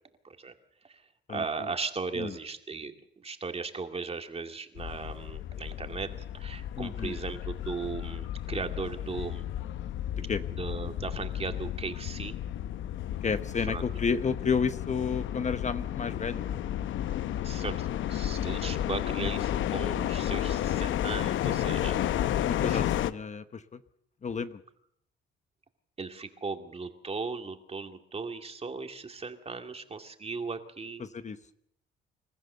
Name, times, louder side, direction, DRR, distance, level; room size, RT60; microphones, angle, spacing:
voice 1, 1.3-9.5 10.5-12.4 13.7-13.8 17.4-22.4 22.7-22.8 26.0-31.1, right 4 dB, 30° right, 6 dB, 2.3 m, -37 dB
sound 1, 4.8-23.1, left 11 dB, 75° left, 0.8 m, -32 dB
voice 2, 6.8-7.2 10.1-10.4 13.2-16.6 22.5-23.8 24.2-24.6 31.0-31.4, left 5 dB, 35° left, 11 dB, 1.0 m, -31 dB
27.5 x 14.5 x 6.8 m, 0.73 s
cardioid pair, 90°, 20 cm